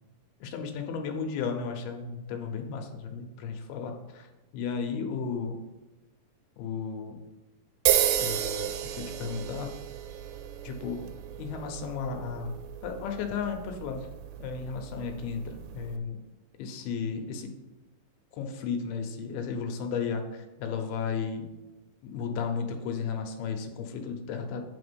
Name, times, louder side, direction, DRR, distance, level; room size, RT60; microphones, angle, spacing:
voice 1, 0.4-4.3 4.5-5.6 6.6-7.2 8.2-9.7 10.6-11.0 11.4-12.5 12.8-14.1 14.4-16.2 16.6-17.5 18.4-21.5 22.0-24.6, left 6 dB, 80° left, 4 dB, 2.7 m, -34 dB
sound 1, 7.9-16.0, right 11 dB, 90° right, 2.5 m, -32 dB
7.2 x 4.3 x 6.8 m, 1.1 s
omnidirectional pair, 4.4 m